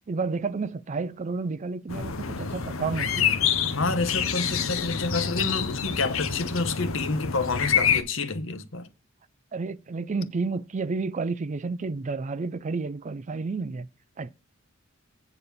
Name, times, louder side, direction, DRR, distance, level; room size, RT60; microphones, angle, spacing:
voice 1, 0.1-3.4 9.5-13.9 14.2-14.3, right 4 dB, 35° right, 0.4 m, -31 dB
sound 1, 1.9-8.0, left 7 dB, 90° left, 1.0 m, -27 dB
voice 2, 3.7-8.9, left 3 dB, 70° left, 1.1 m, -29 dB
8.8 x 4.0 x 6.9 m
head